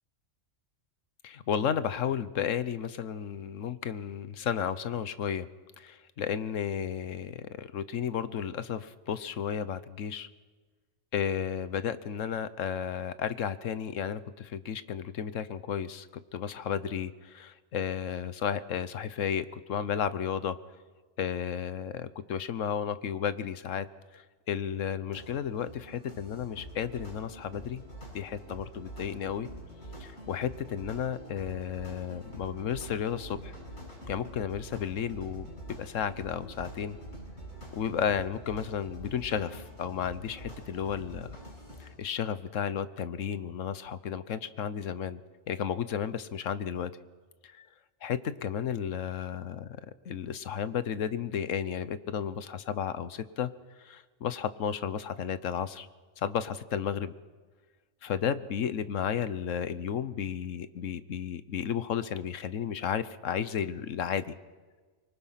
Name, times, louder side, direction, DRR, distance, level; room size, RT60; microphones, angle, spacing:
voice 1, 1.2-5.5 5.8-10.3 11.1-16.1 16.3-20.6 21.2-23.9 24.1-27.8 28.1-29.5 30.0-33.5 34.1-35.5 35.8-37.0 37.7-41.4 41.8-45.2 45.5-46.9 47.4-47.7 48.0-53.5 53.8-55.9 56.2-57.1 58.0-64.4, left 8 dB, 70° left, 14 dB, 1.2 m, -33 dB
sound 1, 25.0-41.9, equal, 55° left, 8.5 m, -45 dB
24.5 x 24.0 x 5.8 m, 1.4 s
omnidirectional pair, 1.4 m